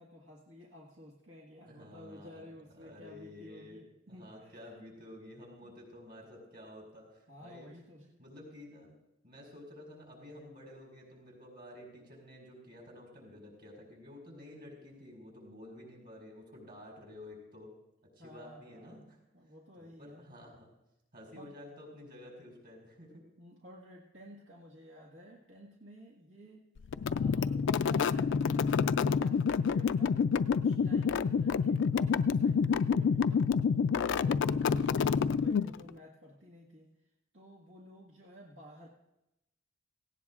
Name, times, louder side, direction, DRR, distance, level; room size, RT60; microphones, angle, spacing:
voice 1, 0.0-4.7 7.3-8.1 18.2-19.0 19.3-20.2 21.3-21.5 23.4-26.6 27.1-30.2 30.5-33.6 34.2-38.9, equal, 90° right, -2 dB, 1.7 m, -53 dB
voice 2, 1.7-2.5 2.7-7.7 8.0-9.0 9.2-17.7 18.2-19.2 19.8-20.7 21.1-23.2 27.1-27.6 31.3-31.6 34.5-35.0, left 1 dB, 55° right, -2 dB, 5.1 m, -51 dB
sound 1, 26.9-35.9, left 6 dB, 65° left, 0.3 m, -28 dB
17.5 x 16.5 x 2.4 m, 0.90 s
head